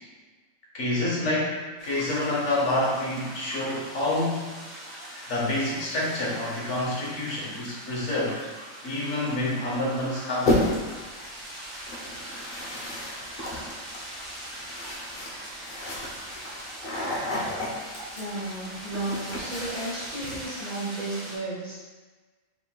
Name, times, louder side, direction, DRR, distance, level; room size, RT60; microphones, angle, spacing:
voice 1, 0.7-1.6 1.8-4.5 5.3-8.4 8.8-10.7, left 1 dB, 60° left, -5 dB, 1.2 m, -27 dB
sound 1, 1.8-21.4, right 1 dB, 60° right, 1.4 m, -41 dB
sound 2, 10.4-11.0 11.9-20.4, left 1 dB, 45° left, 0.7 m, -32 dB
voice 2, 18.1-21.9, right 2 dB, 35° right, -8 dB, 1.0 m, -33 dB
4.8 x 3.6 x 2.3 m, 1.3 s
omnidirectional pair, 1.4 m